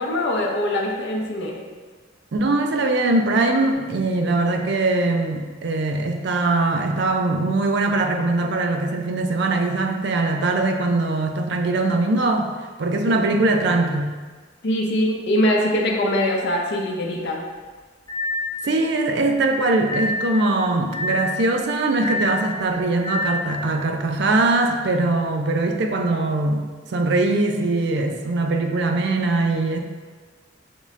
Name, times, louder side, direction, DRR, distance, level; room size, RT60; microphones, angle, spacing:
voice 1, 0.0-1.6 13.2-13.3 14.6-17.4, left 1 dB, 60° left, -1 dB, 0.6 m, -22 dB
voice 2, 2.3-12.5 12.8-14.1 18.6-29.8, right 2 dB, 60° right, 4 dB, 0.4 m, -21 dB
sound 1, 18.1-18.6 19.9-20.4 20.9-21.4 22.0-22.5 23.0-23.5, left 2 dB, 20° left, 0.4 m, -27 dB
5.3 x 3.1 x 2.5 m, 1.4 s
head